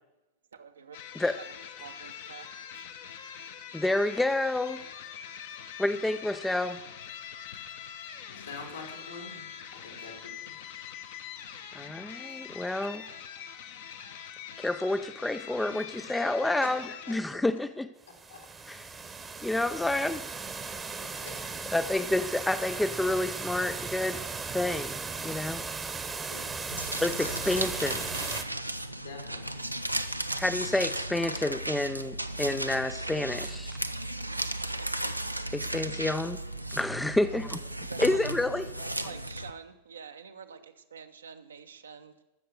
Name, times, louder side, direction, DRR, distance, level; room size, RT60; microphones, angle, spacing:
voice 1, 0.5-1.0 1.4-1.5 1.8-2.5 37.2-37.4 37.9-38.3 38.6-42.1, right 6 dB, 70° right, 8 dB, 0.9 m, -47 dB
sound 1, 0.9-17.2, left 8 dB, 55° left, 1.0 m, -44 dB
voice 2, 3.7-4.8 5.8-6.8 11.7-13.0 14.6-17.9 18.7-18.9 19.4-20.2 21.1-21.2 21.7-24.2 24.5-25.6 27.0-28.1 30.3-33.8 35.5-36.4 36.7-37.6 38.0-38.7, left 2 dB, 5° left, 11 dB, 0.4 m, -29 dB
voice 3, 8.3-9.5 9.7-10.6 16.6-16.7 18.3-18.4 21.0-21.3 26.3-26.5 28.9-29.7, left 4 dB, 75° left, 1 dB, 3.0 m, -45 dB
sound 2, 18.1-28.4, right 4 dB, 15° right, 1.0 m, -37 dB
sound 3, 26.7-39.5, right 1 dB, 90° right, 0.5 m, -35 dB
14.0 x 6.6 x 6.6 m, 1.0 s
figure-of-eight pair, 90°, 0 cm